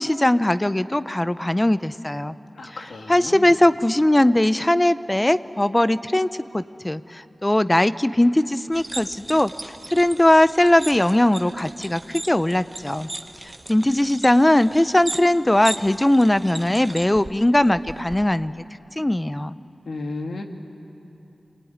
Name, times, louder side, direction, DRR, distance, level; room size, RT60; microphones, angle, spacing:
voice 1, 0.0-2.3 3.1-13.1 13.4-18.5 19.0-19.6, left 1 dB, 15° left, 14 dB, 0.6 m, -20 dB
voice 2, 2.6-3.5 19.9-20.4, left 3 dB, 85° left, 3 dB, 2.1 m, -33 dB
Xe Đồ Chơi - Toy Car, 8.7-18.3, right 1 dB, 25° right, 1.0 m, -37 dB
28.5 x 20.0 x 9.5 m, 3.0 s
wide cardioid pair, 90°, 0 cm